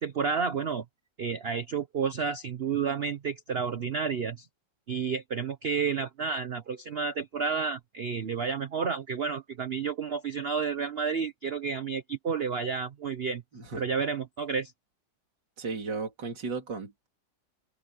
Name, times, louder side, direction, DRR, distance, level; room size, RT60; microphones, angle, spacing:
voice 1, 0.0-0.8 1.2-4.5 4.9-13.4 13.8-14.7, right 6 dB, 50° right, 0.8 m, -31 dB
voice 2, 15.6-17.1, right 4 dB, 65° right, 3.8 m, -35 dB
open air
omnidirectional pair, 2.0 m